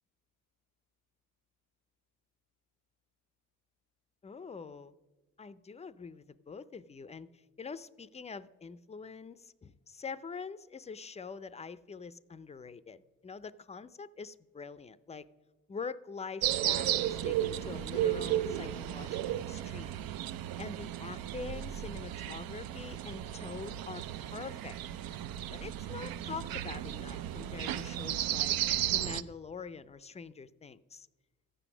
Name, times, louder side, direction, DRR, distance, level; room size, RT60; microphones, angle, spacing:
voice 1, 4.2-4.9 5.4-15.3 15.7-20.0 20.6-24.8 25.5-28.6 28.9-31.1, left 5 dB, 20° left, 15 dB, 0.4 m, -45 dB
sound 1, 16.4-29.2, right 12 dB, 80° right, 0.6 m, -34 dB
14.0 x 9.0 x 6.0 m, 1.2 s
cardioid pair, 110°, 34 cm